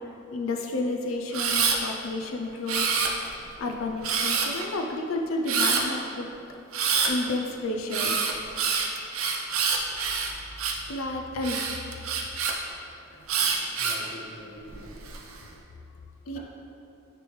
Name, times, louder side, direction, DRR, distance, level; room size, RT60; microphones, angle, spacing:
voice 1, 0.3-2.9 3.6-6.3 7.1-8.2 10.9-11.6 16.3-16.4, left 2 dB, 75° left, 2 dB, 0.5 m, -31 dB
Camera, 1.3-1.8 2.7-3.4 4.0-4.6 5.5-5.8 6.7-7.1 7.9-10.9 11.4-12.5 13.3-14.1 14.7-15.2, right 6 dB, 90° right, 0.6 m, -26 dB
voice 2, 13.3-15.0, equal, 40° left, -5 dB, 1.2 m, -45 dB
9.2 x 3.3 x 3.1 m, 2.8 s
head